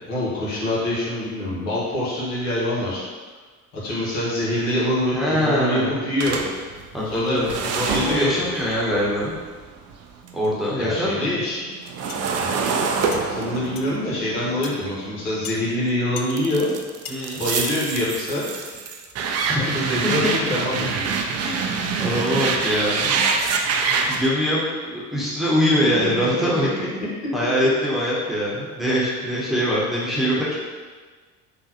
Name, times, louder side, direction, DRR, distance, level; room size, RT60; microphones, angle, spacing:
voice 1, 0.0-3.0 3.7-6.4 7.0-8.3 10.8-11.7 12.1-12.5 13.1-16.7 17.4-18.4 19.4-21.0 26.0-26.5, left 1 dB, 75° left, -7 dB, 1.2 m, -25 dB
voice 2, 5.1-5.9 6.9-7.5 7.9-9.4 10.3-11.3 17.1-17.4 19.5-19.7 20.0-20.3 21.4-23.2 24.1-26.7 27.3-30.6, equal, ahead, -7 dB, 0.9 m, -23 dB
sound 1, 6.2-10.5 10.8-15.7 16.3-24.3, right 5 dB, 40° right, 0.4 m, -26 dB
sound 2, 12.1-12.3 13.1-13.2 13.8-13.9 14.6-14.7 15.4-15.6 16.2-16.3 16.7-16.8 17.1-17.2 17.6-17.8, left 8 dB, 55° left, 0.5 m, -36 dB
3.7 x 2.3 x 2.9 m, 1.4 s
hypercardioid pair, 55°, 44 cm